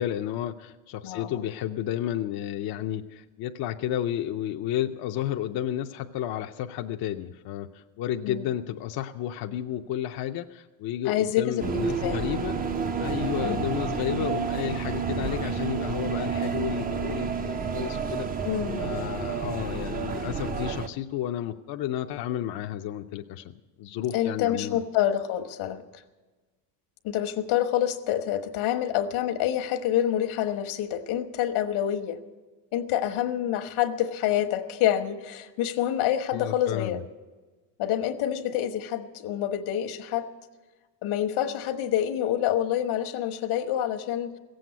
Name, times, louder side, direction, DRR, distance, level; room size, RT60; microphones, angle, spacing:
voice 1, 0.0-12.6 13.0-18.3 18.8-24.8 36.3-37.0, left 11 dB, 50° left, 0.6 m, -32 dB
voice 2, 1.0-1.4 8.2-8.4 11.1-12.2 13.4-13.7 18.4-18.8 24.1-25.8 27.0-32.2 32.7-37.0 37.8-40.3 41.0-44.4, left 11 dB, 70° left, 1.3 m, -27 dB
sound 1, 11.6-20.9, right 5 dB, 20° right, 0.4 m, -30 dB
16.5 x 7.8 x 9.4 m
cardioid pair, 125°, 49 cm